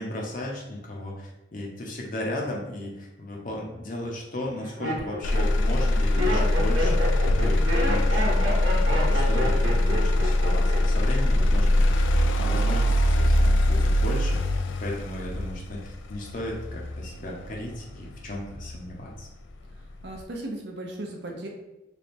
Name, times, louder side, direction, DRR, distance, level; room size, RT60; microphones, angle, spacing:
voice 1, 0.0-8.5 8.8-12.0 12.4-14.4 14.8-19.3, left 1 dB, 40° left, -2 dB, 0.7 m, -35 dB
Laughter, 3.4-3.8 4.4-11.0 11.3-11.8, equal, 70° right, 1.0 m, -30 dB
Motor vehicle (road), 5.2-19.2 19.7-20.2, left 1 dB, 70° left, 0.3 m, -23 dB
voice 2, 20.0-21.5, right 1 dB, 55° right, 1 dB, 0.7 m, -36 dB
3.4 x 2.3 x 4.2 m, 0.95 s
head